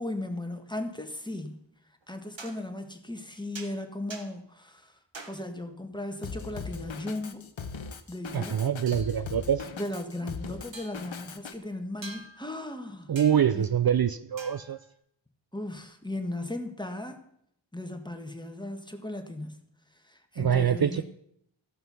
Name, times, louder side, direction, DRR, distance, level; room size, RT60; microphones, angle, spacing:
voice 1, 0.0-1.6 2.1-5.0 5.3-7.5 8.1-8.6 9.8-13.1 13.5-13.7 15.5-17.2 17.7-19.6 19.9-21.0, left 1 dB, 10° left, 5 dB, 1.5 m, -36 dB
sound 1, 2.0-2.1 2.4-2.7 3.5-3.8 4.1-4.3 5.1-5.4 8.9-9.2 9.9-10.0 10.7-11.2 12.0-12.6 13.2-13.6 14.4-14.9, right 3 dB, 70° right, 1.4 m, -45 dB
Drum kit, 6.2-11.5, left 5 dB, 75° left, 0.9 m, -39 dB
voice 2, 8.3-9.7 13.1-14.8 20.4-21.0, right 8 dB, 50° right, 12 dB, 0.5 m, -25 dB
15.0 x 5.8 x 5.5 m, 0.72 s
cardioid pair, 40°, 46 cm